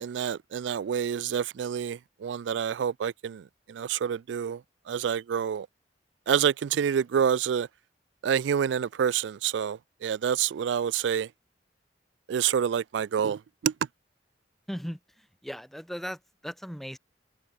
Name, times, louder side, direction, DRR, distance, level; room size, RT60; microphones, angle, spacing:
voice 1, 0.0-3.4 3.7-4.6 4.9-5.7 6.3-7.7 8.2-11.3 12.3-13.7, right 8 dB, 75° right, 0.3 m, -27 dB
voice 2, 14.7-15.0 15.4-17.0, equal, ahead, 4.8 m, -37 dB
head